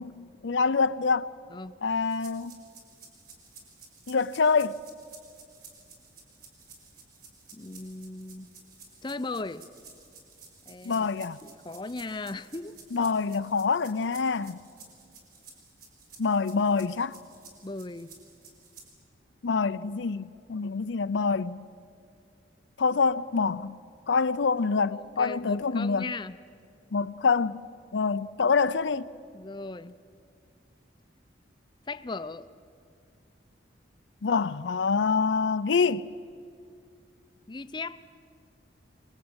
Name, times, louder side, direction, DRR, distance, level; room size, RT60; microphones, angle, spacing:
voice 1, 0.0-1.3 1.8-2.6 4.1-4.8 10.8-11.4 12.9-14.6 16.2-17.2 19.4-21.6 22.8-23.8 24.1-26.1 26.9-27.6 27.9-29.1 34.2-36.1, left 4 dB, 80° left, 0.6 m, -26 dB
sound 1, 2.1-18.9, right 5 dB, 50° right, 4.9 m, -53 dB
voice 2, 7.5-8.5 9.0-9.6 10.7-11.1 11.4-12.8 17.6-18.1 25.2-26.4 29.3-30.0 31.9-32.5 37.5-38.0, left 3 dB, 25° left, 0.6 m, -37 dB
24.0 x 20.0 x 8.8 m
head